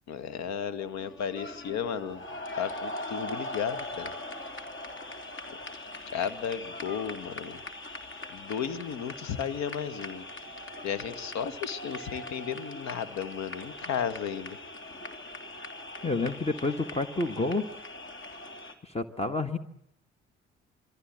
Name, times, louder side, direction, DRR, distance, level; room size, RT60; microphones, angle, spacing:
voice 1, 0.1-2.2 2.6-4.1 5.5-5.6 6.1-7.6 8.3-10.2 10.8-14.6, left 8 dB, 55° left, 14 dB, 1.8 m, -34 dB
sound 1, 0.8-18.7, left 1 dB, 35° left, 3.4 m, -41 dB
voice 2, 16.0-17.7 18.8-19.6, left 3 dB, 20° left, 11 dB, 1.7 m, -29 dB
27.5 x 22.5 x 7.9 m, 0.79 s
figure-of-eight pair, 45°, 32 cm